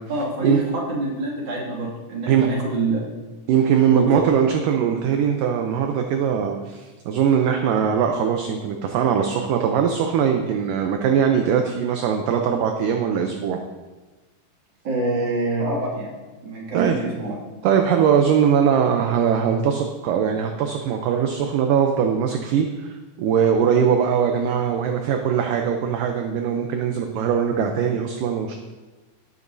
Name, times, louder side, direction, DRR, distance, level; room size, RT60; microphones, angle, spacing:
voice 1, 0.1-3.0 3.9-4.2 14.8-16.1 16.4-17.4, right 2 dB, 35° right, -3 dB, 2.5 m, -26 dB
voice 2, 3.5-13.6 16.7-17.0 17.6-28.6, right 7 dB, 75° right, 4 dB, 2.1 m, -21 dB
18.0 x 8.3 x 2.7 m, 1.2 s
omnidirectional pair, 4.3 m